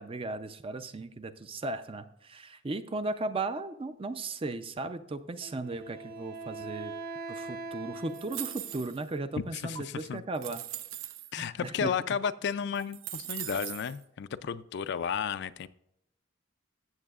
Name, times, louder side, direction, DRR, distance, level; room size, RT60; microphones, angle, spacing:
voice 1, 0.0-6.9 7.3-10.6 11.4-11.9, right 2 dB, 25° right, 10 dB, 0.5 m, -36 dB
Wind instrument woodwind instrument, 5.4-9.0, right 3 dB, 45° right, 1.6 m, -42 dB
sound 1, 8.1-9.1 9.8-9.9 10.3-11.3 12.2-12.3 12.7-14.0, right 12 dB, 85° right, 0.5 m, -40 dB
voice 2, 9.5-10.2 11.3-15.7, left 7 dB, 55° left, 13 dB, 0.4 m, -33 dB
14.5 x 7.3 x 2.4 m, 0.83 s
head